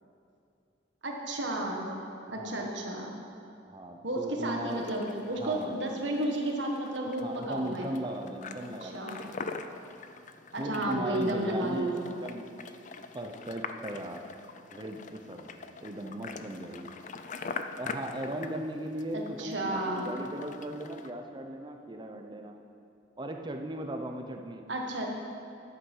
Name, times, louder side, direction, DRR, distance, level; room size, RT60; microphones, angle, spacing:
voice 1, 1.0-1.9 2.3-3.2 4.0-7.9 8.8-9.2 10.5-12.1 19.1-20.1 24.7-25.1, right 1 dB, 70° right, 0 dB, 1.6 m, -32 dB
voice 2, 2.3-2.7 3.6-4.9 5.3-5.9 7.2-9.3 10.6-12.5 13.1-14.2 14.7-15.5 15.8-16.9 17.8-22.5 23.2-24.7, right 1 dB, 25° right, 4 dB, 0.7 m, -38 dB
sound 1, 4.7-21.1, left 4 dB, 40° left, 0.5 m, -44 dB
11.0 x 8.8 x 5.5 m, 2.6 s
head